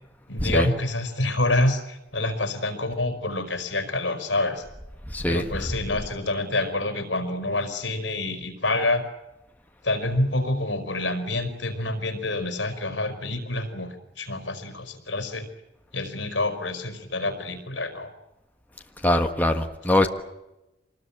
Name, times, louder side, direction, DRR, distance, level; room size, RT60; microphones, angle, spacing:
voice 1, 0.3-4.6 5.3-9.0 9.8-15.5 15.9-18.1, left 2 dB, 75° left, 7 dB, 4.9 m, -27 dB
voice 2, 5.1-5.4 19.0-20.1, left 1 dB, 10° left, 4 dB, 1.5 m, -22 dB
26.0 x 20.0 x 8.9 m, 0.95 s
head